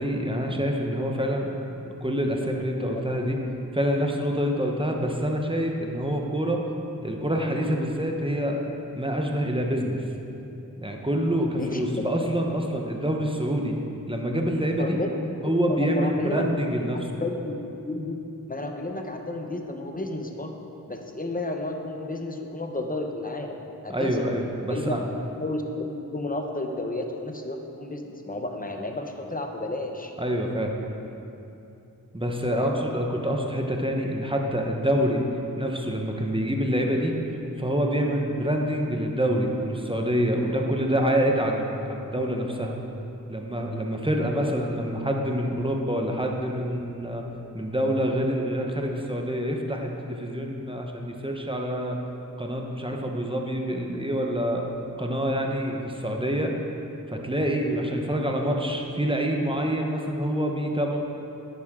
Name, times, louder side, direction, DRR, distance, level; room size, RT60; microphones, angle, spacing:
voice 1, 0.0-1.5 1.8-3.4 3.7-6.6 7.0-8.7 8.9-10.0 10.8-13.7 14.1-15.0 15.4-17.2 23.9-25.0 30.2-30.7 32.1-35.2 35.6-37.1 37.6-42.7 43.3-47.2 47.5-52.0 52.4-54.7 55.0-56.5 57.1-61.0, equal, 15° right, 1 dB, 1.0 m, -26 dB
voice 2, 11.6-12.0 14.8-15.3 15.6-16.5 16.9-17.6 17.9-18.1 18.5-20.5 20.9-23.6 23.8-24.3 24.7-24.9 25.4-30.1 32.5-32.8 44.4-44.5, left 2 dB, 25° left, 3 dB, 0.9 m, -32 dB
11.0 x 8.9 x 3.8 m, 2.9 s
wide cardioid pair, 55°, 35 cm